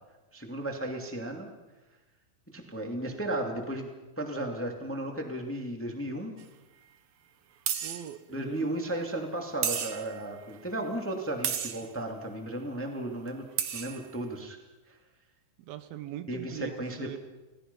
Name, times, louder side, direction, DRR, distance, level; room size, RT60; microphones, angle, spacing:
voice 1, 0.3-1.5 2.5-3.9 4.2-6.4 8.3-13.4 13.7-14.6 14.9-15.0 16.3-17.2, right 1 dB, 5° left, 2 dB, 1.8 m, -34 dB
sound 1, 6.4-6.5 7.7-8.1 9.6-10.2 11.4-11.9 13.3-13.4 13.6-14.0, right 9 dB, 60° right, 1.7 m, -32 dB
voice 2, 7.8-8.7 15.6-17.2, right 12 dB, 80° right, 11 dB, 3.0 m, -41 dB
29.0 x 19.5 x 5.5 m, 1.1 s
omnidirectional pair, 4.2 m